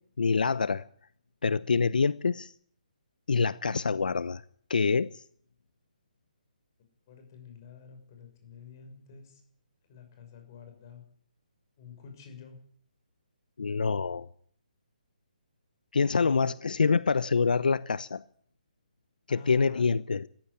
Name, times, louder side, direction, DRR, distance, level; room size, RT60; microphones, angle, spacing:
voice 1, 0.2-0.9 1.4-2.5 3.3-4.4 4.7-5.2 13.6-14.3 15.9-18.2 19.3-20.3, left 5 dB, 70° left, 0.8 m, -26 dB
voice 2, 7.1-9.4 9.9-11.0 11.8-12.6 16.1-16.5 19.3-19.9, left 5 dB, 25° left, 6.3 m, -48 dB
17.5 x 15.0 x 9.9 m
hypercardioid pair, 175°, 5 cm